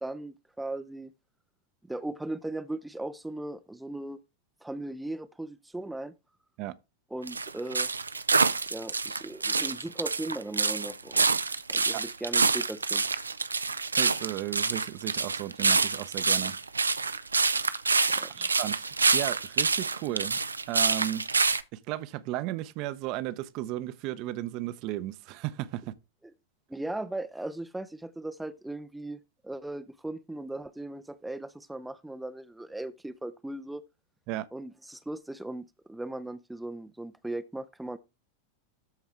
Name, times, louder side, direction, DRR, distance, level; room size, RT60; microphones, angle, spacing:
voice 1, 0.0-1.1 1.9-4.2 4.6-6.1 7.1-7.9 8.7-11.3 11.7-13.0 18.2-18.5 26.7-33.8 34.5-38.0, right 2 dB, 5° right, 0.5 m, -38 dB
sound 1, 7.3-21.6, right 4 dB, 75° right, 0.5 m, -27 dB
voice 2, 14.0-16.6 18.3-18.7 19.1-20.4 20.7-21.3 21.7-25.9 34.3-34.5, right 14 dB, 40° right, 0.7 m, -34 dB
13.0 x 4.6 x 3.4 m
figure-of-eight pair, 90°, 0 cm